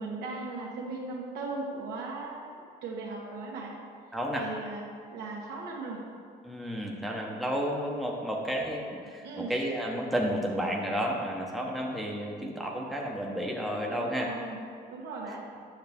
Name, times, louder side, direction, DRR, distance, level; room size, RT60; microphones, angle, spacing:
voice 1, 0.0-3.7 4.4-4.8 5.1-6.0 9.2-9.6 13.9-14.6 14.9-15.5, right 3 dB, 75° right, -2 dB, 1.5 m, -38 dB
voice 2, 4.1-4.4 6.4-14.3, equal, ahead, -2 dB, 0.9 m, -31 dB
8.3 x 6.2 x 3.6 m, 2.1 s
cardioid pair, 110°, 17 cm